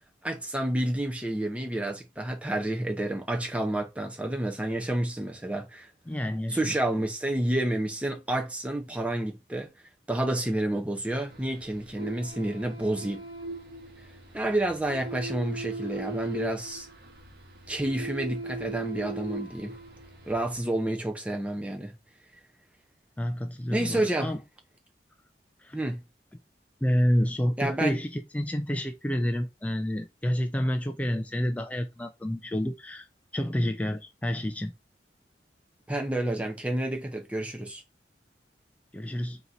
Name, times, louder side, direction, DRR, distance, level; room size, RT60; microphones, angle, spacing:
voice 1, 0.2-5.9 6.5-9.7 10.1-13.2 14.3-16.9 17.7-19.7 20.3-21.9 23.7-24.3 25.7-26.0 27.6-28.0 35.9-37.8, right 1 dB, 5° right, 0.7 m, -29 dB
voice 2, 6.1-6.7 23.2-24.4 25.6-25.8 26.8-33.1 33.3-34.7 38.9-39.4, equal, 10° left, 0.3 m, -29 dB
sound 1, 11.3-20.6, right 2 dB, 60° right, 1.0 m, -40 dB
3.9 x 2.9 x 3.9 m
head